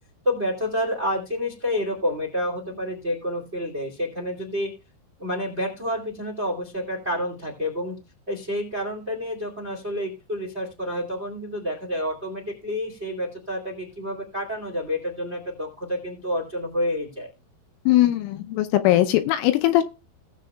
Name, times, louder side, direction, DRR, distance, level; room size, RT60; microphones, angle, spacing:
voice 1, 0.2-4.7 5.2-8.0 8.3-17.3, equal, 30° right, 2 dB, 1.2 m, -29 dB
voice 2, 17.9-19.8, left 14 dB, 80° left, 8 dB, 3.0 m, -20 dB
18.5 x 7.5 x 2.3 m, 0.30 s
omnidirectional pair, 5.9 m